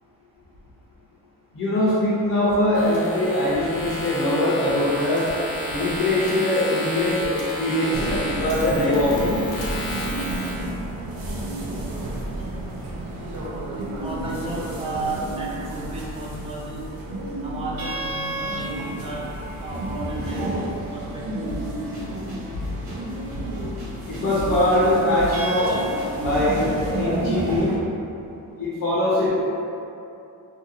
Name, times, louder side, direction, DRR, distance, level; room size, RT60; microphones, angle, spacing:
voice 1, 1.5-5.3 5.7-9.4 24.1-25.7 26.2-26.6 26.9-27.7 28.6-29.4, left 1 dB, 40° left, -10 dB, 0.6 m, -22 dB
sound 1, 2.7-10.5, left 1 dB, 70° left, 0.7 m, -32 dB
sound 2, 7.9-27.8, right 1 dB, 80° right, 0.6 m, -31 dB
voice 2, 14.0-16.9 17.4-19.3 19.6-20.5 20.9-21.5, right 3 dB, 20° right, -4 dB, 0.3 m, -33 dB
sound 3, 21.5-27.0, left 1 dB, 55° right, 1.1 m, -34 dB
2.8 x 2.6 x 2.7 m, 2.7 s
cardioid pair, 170°, 34 cm